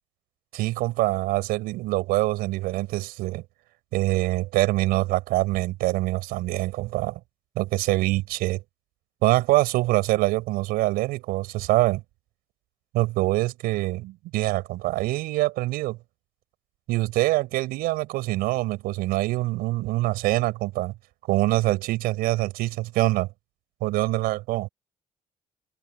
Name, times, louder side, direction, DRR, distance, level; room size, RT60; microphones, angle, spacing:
voice 1, 0.5-3.4 3.9-7.2 7.6-8.6 9.2-12.0 12.9-16.0 16.9-20.9 21.3-23.3 23.8-24.7, right 19 dB, 75° right, 5.8 m, -24 dB
hypercardioid pair, 50°, 16 cm